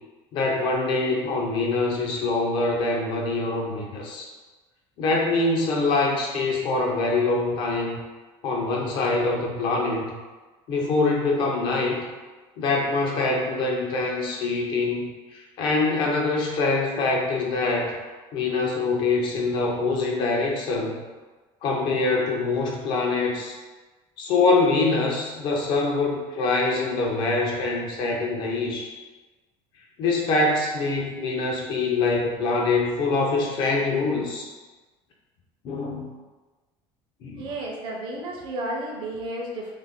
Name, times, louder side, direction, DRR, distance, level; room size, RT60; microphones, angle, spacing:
voice 1, 0.3-4.3 5.0-8.0 8.4-10.1 10.7-12.1 12.6-17.9 18.3-21.0 21.6-23.6 24.2-28.9 30.0-34.5 35.6-36.1 37.2-37.4, left 3 dB, 45° left, -1 dB, 0.5 m, -24 dB
voice 2, 37.4-39.7, right 1 dB, 45° right, -1 dB, 0.5 m, -32 dB
2.5 x 2.2 x 3.5 m, 1.3 s
cardioid pair, 180°, 12 cm